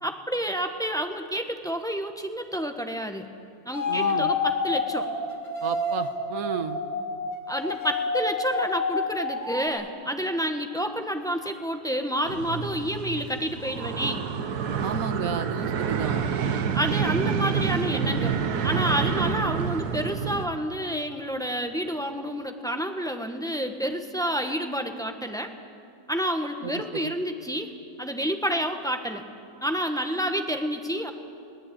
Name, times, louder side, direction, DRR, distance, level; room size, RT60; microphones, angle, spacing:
voice 1, 0.0-3.3 3.6-5.1 7.5-14.3 16.7-18.4 18.6-25.5 26.1-27.7 28.0-29.2 29.6-31.1, equal, 5° left, 5 dB, 1.1 m, -29 dB
sound 1, 3.7-9.7, left 3 dB, 75° left, 2.5 m, -28 dB
voice 2, 3.9-4.3 5.6-6.8 14.8-16.2 19.4-19.5 26.6-27.1, right 7 dB, 65° right, 10 dB, 1.5 m, -32 dB
sound 2, 12.3-20.5, right 6 dB, 90° right, 1.6 m, -28 dB
21.5 x 18.0 x 8.7 m, 2.4 s
omnidirectional pair, 1.6 m